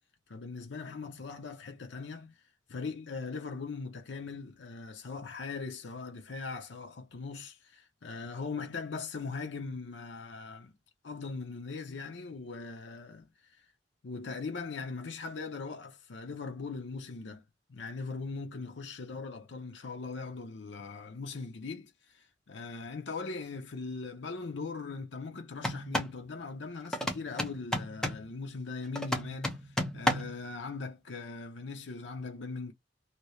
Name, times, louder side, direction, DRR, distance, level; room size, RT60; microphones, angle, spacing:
voice 1, 0.3-2.4 2.7-10.7 11.0-13.7 14.0-17.4 17.7-32.7, left 4 dB, 75° left, 0.7 m, -40 dB
sound 1, 25.6-26.2 26.9-28.3 29.0-30.4, equal, 5° left, 0.8 m, -32 dB
2.9 x 2.7 x 3.1 m
head